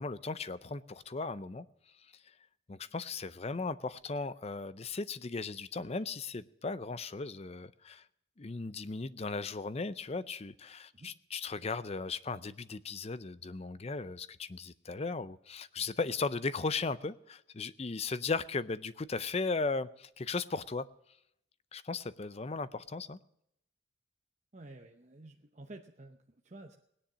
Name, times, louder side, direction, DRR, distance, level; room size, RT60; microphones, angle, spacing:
voice 1, 0.0-1.7 2.7-8.0 8.4-20.9 21.7-23.2, left 4 dB, 30° left, 15 dB, 0.5 m, -37 dB
voice 2, 24.5-26.7, right 2 dB, 35° right, 3 dB, 0.8 m, -51 dB
18.0 x 10.0 x 6.2 m, 0.77 s
head